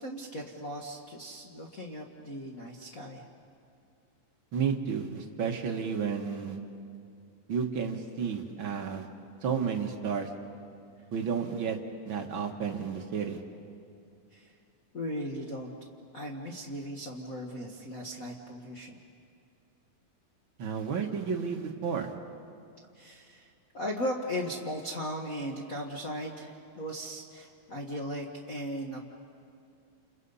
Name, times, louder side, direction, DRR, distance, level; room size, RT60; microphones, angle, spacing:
voice 1, 0.0-3.3 14.3-14.5 14.9-15.8 16.1-19.0 22.9-29.0, equal, 70° left, -2 dB, 0.7 m, -37 dB
voice 2, 4.5-6.6 7.5-9.1 9.4-10.3 11.1-11.8 12.1-13.4 20.6-22.1, right 6 dB, 55° right, 3 dB, 1.5 m, -32 dB
29.5 x 29.0 x 5.5 m, 2.5 s
omnidirectional pair, 4.0 m